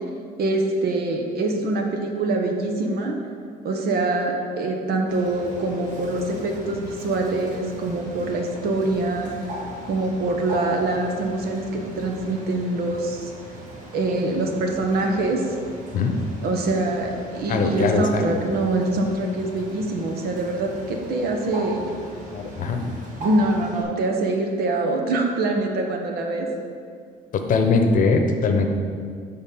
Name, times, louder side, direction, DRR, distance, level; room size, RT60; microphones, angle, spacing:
voice 1, 0.4-3.2 3.6-9.3 9.8-13.3 13.9-15.5 16.4-21.9 22.8-26.5, right 2 dB, 65° right, 2 dB, 1.1 m, -24 dB
Bird, 5.1-23.8, right 1 dB, 45° right, 1.7 m, -39 dB
voice 2, 17.5-18.4 22.3-22.8 27.3-28.7, left 4 dB, 50° left, 5 dB, 0.9 m, -21 dB
7.9 x 4.0 x 5.6 m, 2.1 s
cardioid pair, 110°, 17 cm